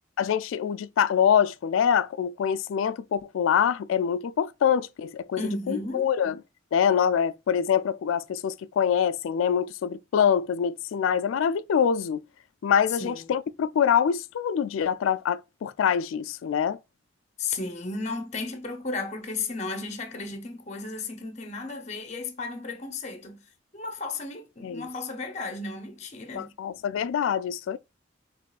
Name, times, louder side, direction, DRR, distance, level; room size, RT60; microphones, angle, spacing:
voice 1, 0.2-5.4 5.7-6.3 6.7-12.2 12.6-16.8 24.6-24.9 26.4-27.8, left 8 dB, 85° left, 0.3 m, -25 dB
voice 2, 5.4-6.1 12.9-13.3 17.4-23.4 23.7-26.6, left 3 dB, 35° left, 0.6 m, -34 dB
5.1 x 3.0 x 2.3 m
head